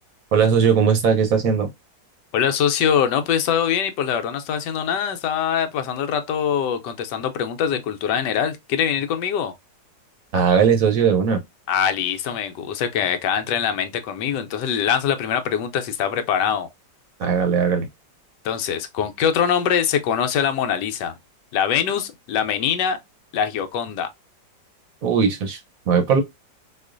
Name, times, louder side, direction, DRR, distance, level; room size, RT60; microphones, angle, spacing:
voice 1, 0.3-1.7 10.3-11.4 17.2-17.9 25.0-25.6 25.9-26.2, right 6 dB, 60° right, 1.0 m, -18 dB
voice 2, 2.3-9.5 11.7-16.7 18.4-21.1 21.5-23.0 23.3-24.1, left 8 dB, 75° left, 1.2 m, -23 dB
4.3 x 2.4 x 2.5 m
omnidirectional pair, 2.0 m